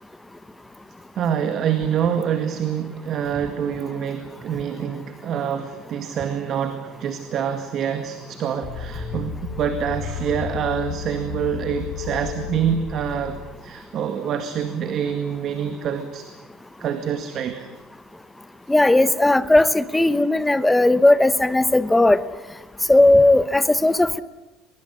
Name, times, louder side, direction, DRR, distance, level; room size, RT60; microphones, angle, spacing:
voice 1, 1.2-16.3 16.8-17.7, right 8 dB, 40° right, 9 dB, 2.0 m, -26 dB
sound 1, 8.6-13.6, left 7 dB, 45° left, 4.8 m, -33 dB
voice 2, 18.7-22.2 22.9-24.2, left 2 dB, 5° left, 14 dB, 1.0 m, -16 dB
23.5 x 22.5 x 9.9 m, 1.1 s
cardioid pair, 150°, 0 cm